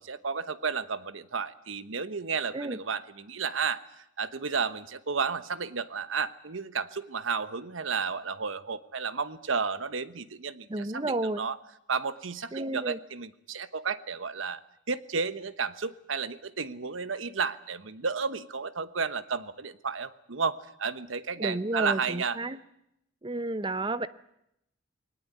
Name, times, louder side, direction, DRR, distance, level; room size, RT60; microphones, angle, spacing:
voice 1, 0.0-11.6 11.9-14.6 14.9-22.4, right 5 dB, 85° right, 13 dB, 1.1 m, -32 dB
voice 2, 10.7-11.4 12.5-13.0 21.4-22.6 23.2-24.1, right 2 dB, 25° right, 14 dB, 0.8 m, -31 dB
21.0 x 19.0 x 9.3 m, 0.80 s
head